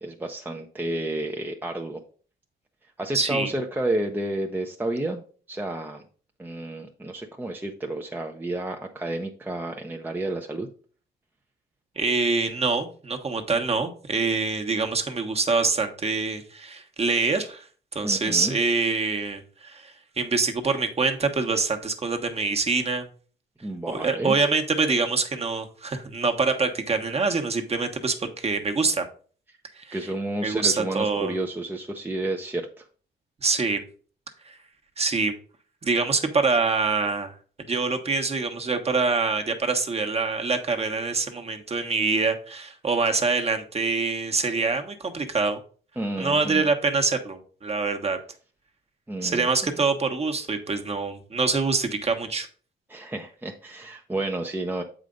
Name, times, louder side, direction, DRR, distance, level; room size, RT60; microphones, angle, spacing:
voice 1, 0.0-2.0 3.0-5.2 5.5-6.0 6.4-10.7 18.0-18.5 23.6-24.3 29.9-32.7 46.0-46.7 49.1-49.8 52.9-54.8, right 1 dB, 10° right, 2 dB, 0.7 m, -31 dB
voice 2, 3.1-3.5 12.0-17.7 17.9-23.1 23.9-29.0 29.8-30.0 30.4-31.4 33.4-33.8 34.5-34.6 35.0-35.3 35.8-37.3 37.6-45.6 46.2-48.2 49.2-52.5, right 4 dB, 30° right, 5 dB, 1.2 m, -25 dB
7.4 x 5.0 x 3.8 m, 0.41 s
cardioid pair, 90°, 20 cm